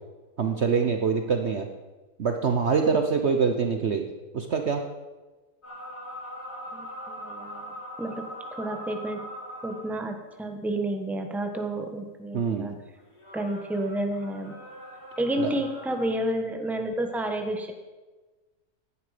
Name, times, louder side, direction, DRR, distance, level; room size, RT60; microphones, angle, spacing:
voice 1, 0.4-1.7 2.2-4.1 4.3-4.8 12.3-12.7 15.4-15.5, right 5 dB, 50° right, 5 dB, 1.0 m, -24 dB
sound 1, 5.6-10.1 13.0-16.1, equal, 80° left, 3.7 m, -41 dB
voice 2, 6.7-9.3 9.6-12.8 13.3-14.5 15.2-17.7, right 1 dB, ahead, 5 dB, 1.1 m, -30 dB
16.5 x 10.5 x 5.1 m, 1.2 s
omnidirectional pair, 1.7 m